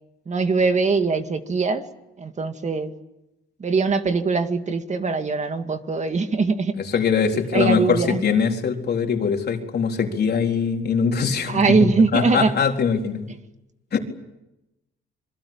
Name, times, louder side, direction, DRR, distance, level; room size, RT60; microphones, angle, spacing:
voice 1, 0.3-1.8 2.2-2.9 3.6-6.7 7.5-8.2 11.5-12.5, right 4 dB, 35° right, 7 dB, 2.3 m, -21 dB
voice 2, 6.8-11.6 12.1-13.3 13.9-14.0, left 6 dB, 55° left, 3 dB, 4.1 m, -22 dB
26.5 x 23.0 x 8.9 m, 0.92 s
cardioid pair, 90°, 20 cm